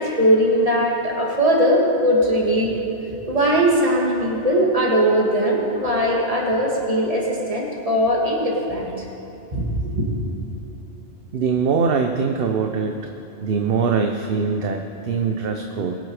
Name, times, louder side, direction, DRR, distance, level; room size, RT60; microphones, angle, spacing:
voice 1, 0.0-2.7 3.3-9.1 9.5-10.0, equal, 30° right, -3 dB, 2.3 m, -20 dB
voice 2, 11.3-13.0 13.4-16.0, right 5 dB, 55° right, 4 dB, 0.9 m, -22 dB
22.0 x 8.0 x 4.9 m, 2.9 s
omnidirectional pair, 1.3 m